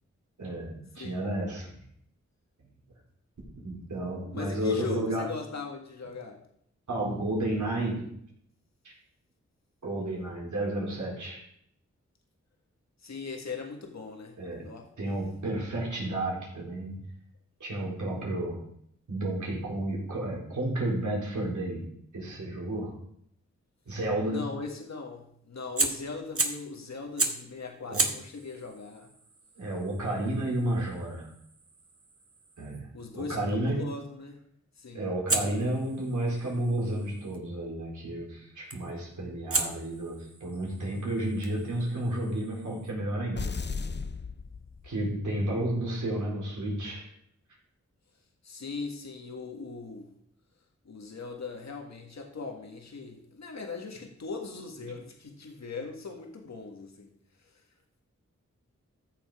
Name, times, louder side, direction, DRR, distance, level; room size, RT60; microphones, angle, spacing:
voice 1, 0.4-1.8 3.6-5.3 6.9-8.0 9.8-11.4 14.4-14.7 15.0-17.0 17.6-18.6 19.1-21.9 22.1-22.9 23.9-24.5 27.9-28.0 29.6-31.3 32.6-33.8 34.9-43.5 44.8-47.1 54.9-55.0, right 1 dB, 85° right, -3 dB, 4.2 m, -31 dB
voice 2, 4.3-6.4 13.0-14.9 24.2-29.1 32.9-34.4 34.8-35.1 48.4-50.1 50.9-57.1, left 4 dB, 65° left, 2 dB, 1.8 m, -39 dB
Fire, 25.7-26.7 27.2-27.5 27.9-32.8 35.3-37.4 38.7-39.0 39.5-42.9, right 3 dB, 50° right, 1.7 m, -35 dB
sound 1, 43.4-45.2, left 4 dB, 35° left, 0.6 m, -35 dB
14.0 x 7.0 x 5.0 m, 0.69 s
cardioid pair, 50°, 29 cm